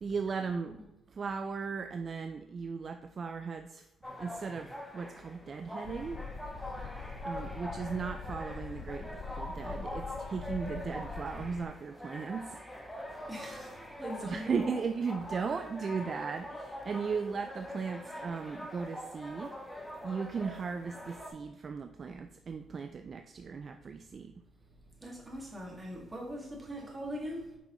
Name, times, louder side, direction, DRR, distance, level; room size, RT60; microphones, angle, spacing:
voice 1, 0.0-3.9 4.2-6.2 7.2-12.6 14.2-19.6 20.0-24.3, right 5 dB, 45° right, 0.3 m, -37 dB
sound 1, 4.0-21.3, equal, 10° left, 1.2 m, -44 dB
sound 2, 5.8-11.7, left 5 dB, 75° left, 0.5 m, -43 dB
voice 2, 13.3-14.7 25.0-27.6, equal, 20° right, 2.0 m, -41 dB
6.1 x 5.5 x 3.0 m
cardioid pair, 90°, 0 cm